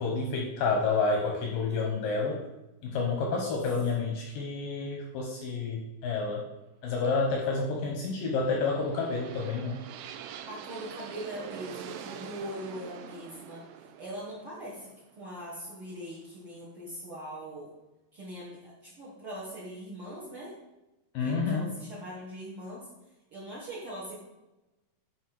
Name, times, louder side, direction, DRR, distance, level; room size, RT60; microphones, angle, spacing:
voice 1, 0.0-2.4 2.8-6.4 6.8-9.8 21.1-21.7, left 4 dB, 80° left, 1 dB, 2.0 m, -29 dB
sound 1, 8.3-16.2, right 9 dB, 85° right, 2.4 m, -45 dB
voice 2, 10.5-13.6 14.0-14.9 15.2-17.7 18.1-20.5 21.2-22.9 23.3-24.2, equal, 70° right, -7 dB, 1.3 m, -41 dB
11.0 x 4.6 x 4.6 m, 1.0 s
omnidirectional pair, 5.2 m